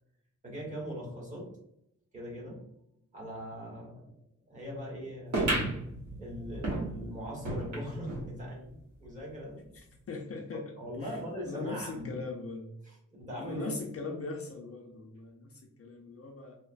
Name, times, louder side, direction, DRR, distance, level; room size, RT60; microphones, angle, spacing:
voice 1, 0.4-1.5 2.1-2.6 3.1-4.2 4.5-5.5 6.2-9.6 10.8-12.1 12.8-13.7, equal, 25° right, -4 dB, 1.0 m, -41 dB
sound 1, 5.3-8.3 8.7-8.8 9.0-9.1 9.9-10.0, right 1 dB, 60° right, 1.1 m, -33 dB
voice 2, 9.7-10.7 11.0-11.1 11.5-12.7 13.4-16.6, left 3 dB, 45° left, 1 dB, 0.4 m, -40 dB
3.0 x 2.0 x 2.4 m, 0.77 s
wide cardioid pair, 145°, 32 cm